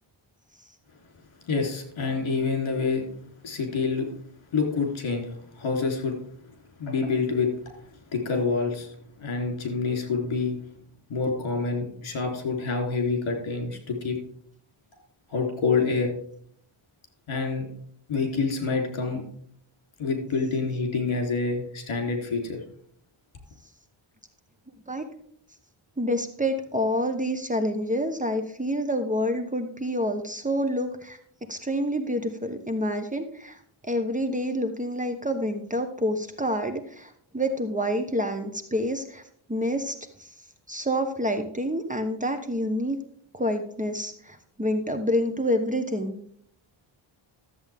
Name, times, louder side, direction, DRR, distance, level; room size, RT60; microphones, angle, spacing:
voice 1, 1.5-3.0 3.4-4.1 4.5-6.2 6.8-7.5 8.1-10.6 11.1-14.2 15.3-16.1 17.3-17.7 18.1-19.2 20.0-22.6, left 4 dB, 70° left, 3 dB, 3.5 m, -27 dB
voice 2, 26.0-31.2 31.5-39.2 39.5-40.3 40.7-43.0 43.3-46.2, equal, 15° right, 6 dB, 1.0 m, -28 dB
13.0 x 8.0 x 3.5 m, 0.64 s
wide cardioid pair, 120°, 49 cm